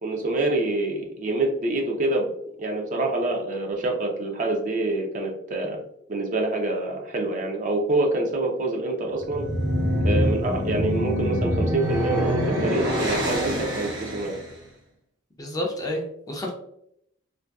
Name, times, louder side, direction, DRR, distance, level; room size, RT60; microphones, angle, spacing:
voice 1, 0.0-2.3 2.6-5.8 6.1-9.4 10.0-14.3, right 2 dB, 40° right, 1 dB, 0.4 m, -26 dB
sound 1, 9.1-14.5, equal, 60° right, 0.8 m, -25 dB
voice 2, 15.4-16.5, left 1 dB, 20° left, 0 dB, 0.4 m, -30 dB
2.6 x 2.6 x 2.2 m, 0.74 s
head